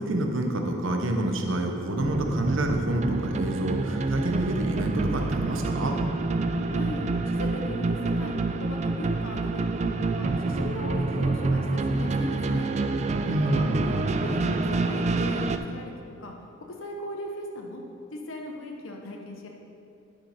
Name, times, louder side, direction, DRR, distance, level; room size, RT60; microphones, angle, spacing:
voice 1, 0.0-6.0 13.3-14.0, right 1 dB, 75° right, 3 dB, 0.9 m, -27 dB
sound 1, 2.0-15.6, right 3 dB, 35° right, 0.3 m, -27 dB
voice 2, 6.7-12.7 13.4-15.9 16.2-16.3 16.7-17.8 18.1-19.5, left 1 dB, 80° left, 1 dB, 1.0 m, -37 dB
10.5 x 6.4 x 4.2 m, 2.5 s
head